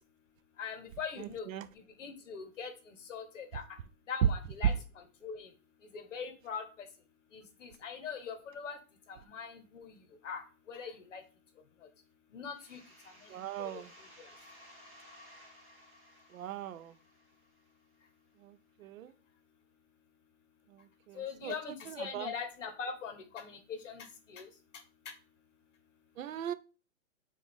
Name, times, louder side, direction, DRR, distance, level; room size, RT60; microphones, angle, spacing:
voice 1, 0.6-1.5 2.0-3.6 4.1-5.5 5.9-6.7 7.3-8.8 9.1-10.0 10.2-11.2 12.3-12.8 13.6-13.8 21.2-24.5, left 6 dB, 60° left, 1.0 m, -42 dB
sound 1, 12.6-18.1, equal, 15° right, 0.8 m, -58 dB
voice 2, 13.3-13.9 16.3-16.9 18.4-18.5 18.8-19.1 21.1-21.5 22.1-22.3 26.2-26.5, right 11 dB, 70° right, 0.5 m, -40 dB
6.2 x 2.4 x 3.4 m
hypercardioid pair, 175°, 42 cm